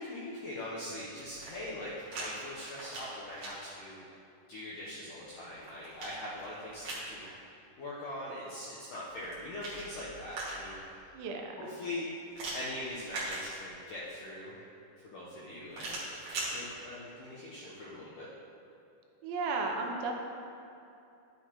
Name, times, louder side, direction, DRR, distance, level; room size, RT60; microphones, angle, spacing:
voice 1, 0.0-4.0 4.5-7.3 7.8-10.8 11.6-12.1 12.5-14.6 15.0-16.0 16.5-18.3, left 1 dB, 75° left, -8 dB, 1.9 m, -42 dB
sound 1, 1.3-2.3 2.6-3.5 5.2-7.1 9.1-10.8 12.3-13.9 15.7-16.5, right 2 dB, 50° right, 2.7 m, -41 dB
voice 2, 11.1-11.7 19.2-20.1, right 3 dB, 85° right, 2 dB, 3.3 m, -34 dB
12.0 x 8.4 x 3.0 m, 2.7 s
omnidirectional pair, 5.2 m